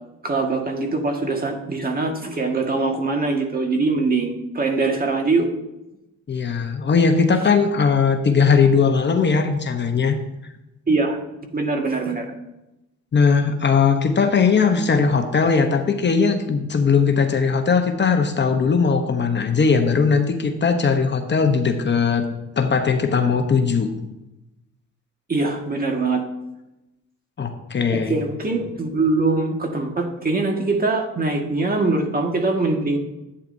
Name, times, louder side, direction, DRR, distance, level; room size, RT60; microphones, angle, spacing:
voice 1, 0.2-5.5 10.9-11.2 11.5-12.3 25.3-26.2 27.9-33.0, right 3 dB, 30° right, 2 dB, 1.7 m, -22 dB
voice 2, 6.3-10.2 13.1-22.3 22.6-23.9 27.4-28.2, left 5 dB, 35° left, 5 dB, 0.9 m, -19 dB
11.5 x 8.9 x 2.7 m, 0.94 s
cardioid pair, 90°, 30 cm